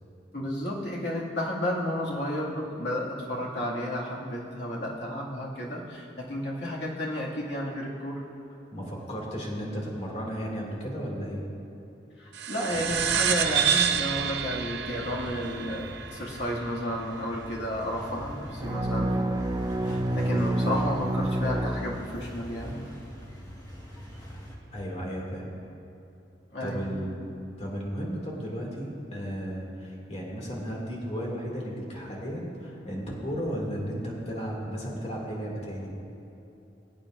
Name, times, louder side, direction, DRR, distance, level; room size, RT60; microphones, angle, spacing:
voice 1, 0.3-8.2 12.2-19.4 19.8-22.9 26.5-27.0, equal, 70° left, -4 dB, 2.2 m, -32 dB
voice 2, 8.7-11.4 24.7-25.5 26.6-27.3 27.6-35.9, equal, 35° left, -3 dB, 2.4 m, -34 dB
sound 1, 12.3-17.3, right 8 dB, 65° right, 0.7 m, -28 dB
sound 2, 12.7-24.5, equal, 20° left, 1.6 m, -42 dB
sound 3, 18.6-22.4, right 1 dB, 20° right, 0.5 m, -28 dB
22.0 x 8.8 x 2.6 m, 2.9 s
head